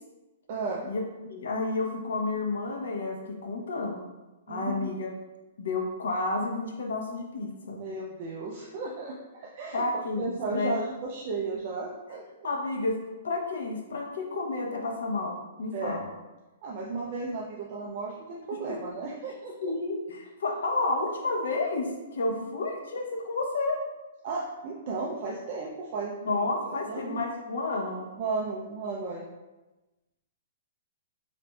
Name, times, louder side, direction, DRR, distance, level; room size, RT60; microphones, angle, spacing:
voice 1, 0.5-0.8 4.5-4.9 7.8-9.8 10.2-12.5 15.7-16.1 16.6-19.7 24.2-26.4 26.9-27.2 28.2-29.2, right 3 dB, 30° right, -2 dB, 0.4 m, -34 dB
voice 2, 1.3-4.0 4.5-5.1 5.6-7.8 9.7-10.8 12.4-13.0 13.2-16.1 18.7-18.8 19.6-23.8 26.2-28.1, left 3 dB, 85° left, 1 dB, 0.8 m, -31 dB
6.0 x 2.5 x 2.3 m, 1.1 s
hypercardioid pair, 180°, 0 cm